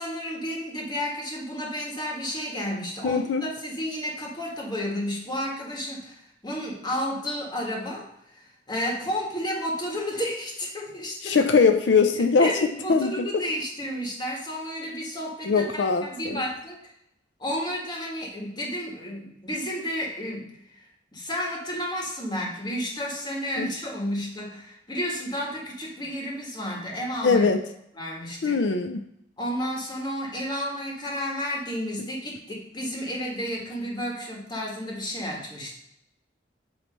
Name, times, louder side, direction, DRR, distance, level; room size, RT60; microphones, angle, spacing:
voice 1, 0.0-11.4 12.1-16.8 17.4-20.8 21.1-27.5 28.0-28.6 29.4-35.8, equal, 25° left, -2 dB, 1.6 m, -32 dB
voice 2, 3.0-3.4 11.2-12.5 12.9-13.3 15.5-16.4 23.6-23.7 27.2-27.6 28.4-29.0, left 5 dB, 80° left, 7 dB, 0.5 m, -21 dB
8.4 x 3.2 x 5.3 m, 0.79 s
head